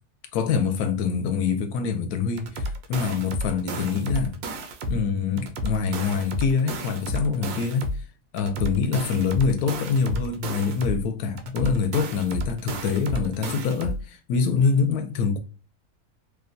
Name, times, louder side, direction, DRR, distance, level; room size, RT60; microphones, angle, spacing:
voice 1, 0.3-4.4 4.9-7.9 8.3-15.4, left 5 dB, 75° left, 1.1 m, -25 dB
sound 1, 2.4-5.0 5.4-8.0 8.4-11.0 11.4-14.0, equal, 75° right, 1.1 m, -32 dB
3.0 x 2.1 x 2.5 m
omnidirectional pair, 1.7 m